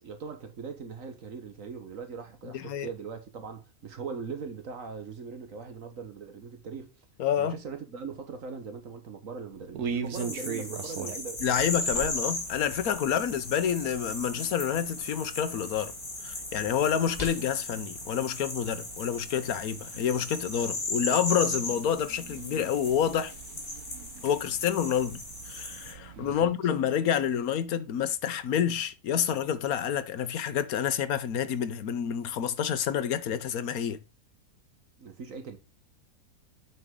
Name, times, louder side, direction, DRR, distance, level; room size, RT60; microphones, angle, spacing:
voice 1, 0.0-7.0 7.4-11.6 11.9-12.0 26.1-26.5 35.0-35.6, right 5 dB, 65° right, 1.6 m, -40 dB
voice 2, 2.5-2.9 7.2-7.6 11.4-15.9 16.2-23.3 24.2-34.0, left 8 dB, 75° left, 1.3 m, -28 dB
sound 1, 9.5-26.5, right 7 dB, 80° right, 1.5 m, -43 dB
sound 2, 10.1-25.9, left 2 dB, 55° left, 3.1 m, -37 dB
sound 3, 11.4-19.3, left 2 dB, 25° left, 2.4 m, -49 dB
8.2 x 5.5 x 3.7 m
omnidirectional pair, 1.6 m